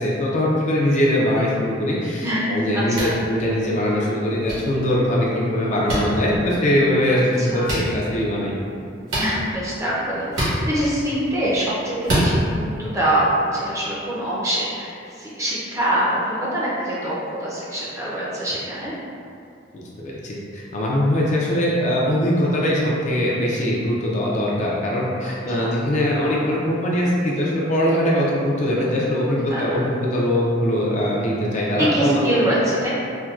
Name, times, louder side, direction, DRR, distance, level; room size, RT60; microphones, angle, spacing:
voice 1, 0.0-8.5 19.7-32.3, left 1 dB, 40° left, -4 dB, 0.4 m, -21 dB
voice 2, 2.2-3.2 7.1-7.7 9.2-18.9 25.2-25.8 29.5-29.8 31.8-32.9, right 1 dB, 15° right, -7 dB, 0.5 m, -24 dB
sound 1, 2.9-3.2 4.4-4.5 5.9-6.0 7.6-7.8 9.1-9.3 10.3-10.5 12.0-12.3, right 1 dB, 75° right, 1.2 m, -23 dB
4.3 x 2.2 x 2.3 m, 2.5 s
head